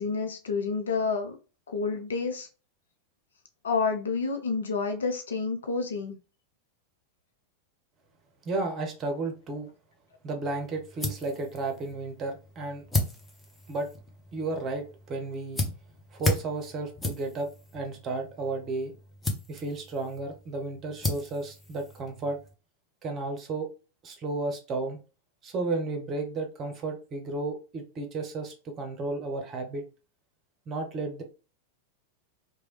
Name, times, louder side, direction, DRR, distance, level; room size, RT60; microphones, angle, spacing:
voice 1, 0.0-1.4 1.7-2.5 3.6-6.2, left 4 dB, 70° left, 5 dB, 0.6 m, -29 dB
voice 2, 8.4-9.7 10.2-12.8 13.7-13.9 14.3-15.6 16.1-18.9 19.5-22.4 23.0-23.7 24.0-25.0 25.4-29.8 30.7-31.2, right 3 dB, 30° right, 3 dB, 0.8 m, -33 dB
sound 1, 10.4-22.5, left 2 dB, 10° left, 0.7 m, -36 dB
3.0 x 2.3 x 3.1 m, 0.33 s
figure-of-eight pair, 90°, 0 cm